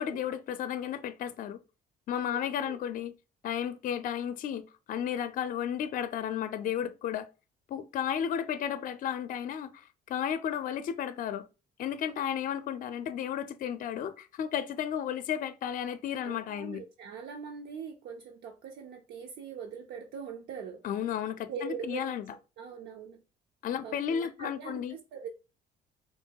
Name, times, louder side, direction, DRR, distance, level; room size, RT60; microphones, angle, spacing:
voice 1, 0.0-1.6 2.1-3.1 3.4-7.3 7.7-11.5 11.8-16.8 20.8-22.3 23.6-25.0, left 9 dB, 55° left, 0.5 m, -33 dB
voice 2, 2.3-2.8 16.2-20.8 21.5-22.2 22.6-23.2 23.8-25.3, right 6 dB, 80° right, 0.6 m, -42 dB
4.1 x 2.3 x 4.5 m
cardioid pair, 110°, 17 cm